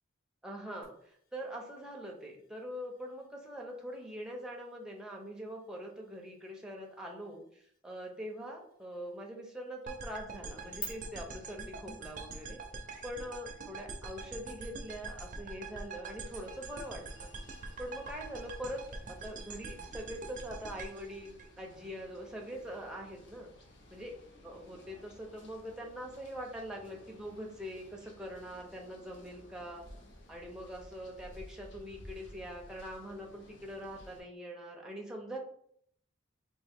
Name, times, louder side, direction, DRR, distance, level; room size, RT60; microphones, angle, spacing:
voice 1, 0.4-12.6 13.0-17.3 17.8-23.5 23.9-24.2 24.4-29.9 30.3-35.4, equal, 5° right, -1 dB, 0.7 m, -43 dB
sound 1, 0.8-10.8, left 4 dB, 45° left, 1.1 m, -55 dB
sound 2, 9.9-22.0, right 3 dB, 40° right, 0.6 m, -44 dB
sound 3, 16.2-34.2, left 1 dB, 60° left, 0.8 m, -56 dB
3.7 x 2.6 x 3.6 m, 0.64 s
head